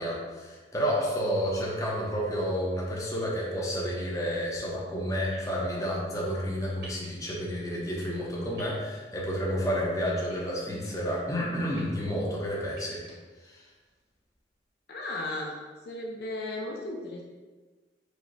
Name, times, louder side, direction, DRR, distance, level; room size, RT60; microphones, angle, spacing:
voice 1, 0.0-13.0 13.4-13.6, equal, 20° left, -4 dB, 0.7 m, -30 dB
sound 1, 5.3-5.5 6.8-7.1 8.6-8.8 10.3-10.9 11.5-11.8 12.7-13.1, right 2 dB, 65° right, 1.2 m, -48 dB
voice 2, 14.9-15.5 15.9-17.2, left 2 dB, 55° left, -1 dB, 0.5 m, -35 dB
4.8 x 2.1 x 4.0 m, 1.3 s
head